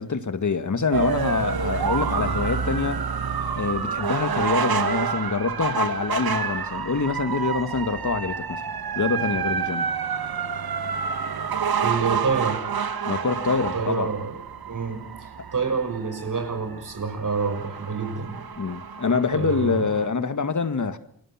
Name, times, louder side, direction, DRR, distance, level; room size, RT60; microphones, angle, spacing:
voice 1, 0.0-3.1 3.5-8.6 9.0-9.9 13.1-14.1 18.6-21.0, left 4 dB, 50° left, 2.0 m, -25 dB
sound 1, 0.9-20.1, right 6 dB, 70° right, 2.1 m, -28 dB
voice 2, 11.8-12.7 13.7-18.4 19.3-19.8, right 5 dB, 55° right, 6.5 m, -28 dB
29.0 x 23.5 x 5.9 m
wide cardioid pair, 85°, 38 cm